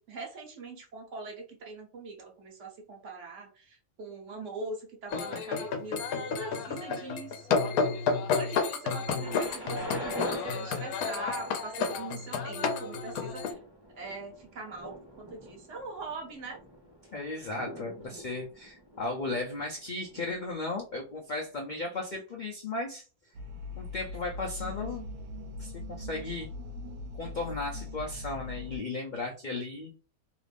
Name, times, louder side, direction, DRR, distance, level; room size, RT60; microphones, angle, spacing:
voice 1, 0.0-7.8 8.4-13.6 13.9-16.6, right 3 dB, 60° right, 1 dB, 1.1 m, -42 dB
sound 1, 5.1-13.5, left 5 dB, 80° left, 1.1 m, -31 dB
Thunder, 9.1-20.9 21.7-21.8, equal, 20° right, 0.7 m, -44 dB
voice 2, 17.1-23.0 23.7-25.0 25.6-26.5 27.2-29.9, left 2 dB, 55° left, -1 dB, 0.5 m, -35 dB
sound 2, 23.4-28.8, left 3 dB, 90° right, 1.1 m, -40 dB
2.9 x 2.5 x 3.3 m, 0.35 s
omnidirectional pair, 1.5 m